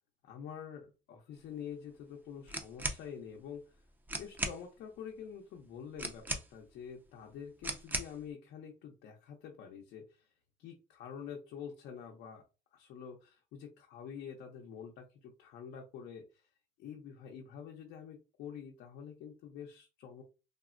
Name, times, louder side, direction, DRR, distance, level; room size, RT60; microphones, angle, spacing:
voice 1, 0.2-3.8 4.2-10.3 10.6-12.4 12.7-16.5 16.8-20.2, left 7 dB, 75° left, 1 dB, 0.6 m, -47 dB
sound 1, 2.5-3.0 3.8-3.9 4.1-4.6 6.0-6.7 7.6-8.2, right 1 dB, 10° right, 0.5 m, -37 dB
3.5 x 2.0 x 2.4 m, 0.31 s
cardioid pair, 110°, 17 cm